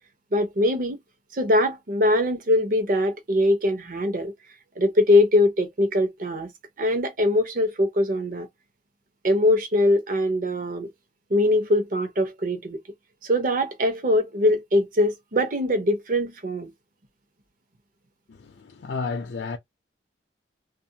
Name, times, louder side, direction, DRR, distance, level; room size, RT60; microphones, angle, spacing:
voice 1, 0.3-1.0 1.3-4.3 4.8-6.5 6.8-8.5 9.2-10.9 11.3-12.8 13.2-16.7, left 1 dB, 50° right, 0.7 m, -22 dB
voice 2, 18.3-19.6, left 4 dB, 70° left, 0.4 m, -32 dB
2.4 x 2.4 x 2.7 m
head